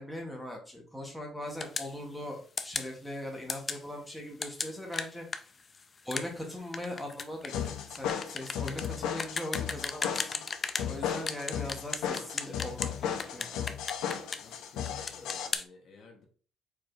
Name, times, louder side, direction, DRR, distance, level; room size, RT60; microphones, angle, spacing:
voice 1, 0.0-5.3 6.0-10.4 10.8-13.6, left 1 dB, ahead, -1 dB, 0.9 m, -40 dB
sound 1, 1.6-1.9 2.6-2.9 3.5-3.8 4.4-10.9 11.3-12.9 13.2-14.6 14.8-15.6, left 4 dB, 25° left, 0.4 m, -35 dB
sound 2, 7.5-15.5, left 8 dB, 85° left, 0.6 m, -35 dB
voice 2, 14.3-16.2, left 3 dB, 45° left, 3 dB, 1.0 m, -54 dB
4.7 x 4.5 x 2.5 m, 0.38 s
cardioid pair, 175°, 0 cm